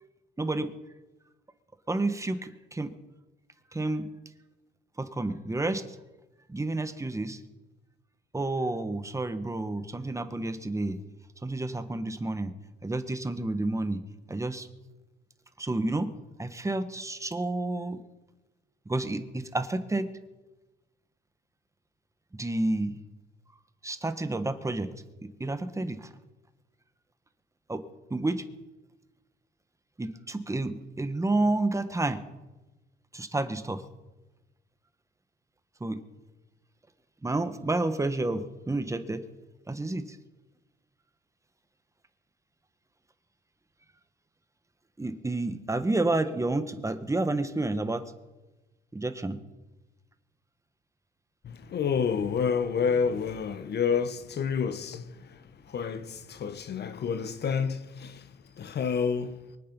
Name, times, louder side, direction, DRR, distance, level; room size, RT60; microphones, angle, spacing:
voice 1, 0.4-0.7 1.9-2.9 3.7-4.1 5.0-5.9 6.5-7.4 8.3-11.0 11.4-12.5 12.8-14.0 14.3-14.7 15.6-16.1 16.4-18.0 18.8-20.1 22.4-23.0 23.8-24.9 25.2-26.1 27.7-27.8 28.1-28.4 30.0-32.2 33.1-33.8 35.8-36.0 37.2-39.2 39.7-40.2 45.0-48.1 48.9-49.4, right 2 dB, 15° right, 1.3 m, -30 dB
voice 2, 51.4-59.4, left 6 dB, 55° left, 1.1 m, -29 dB
23.5 x 8.7 x 5.3 m
cardioid pair, 90°, 20 cm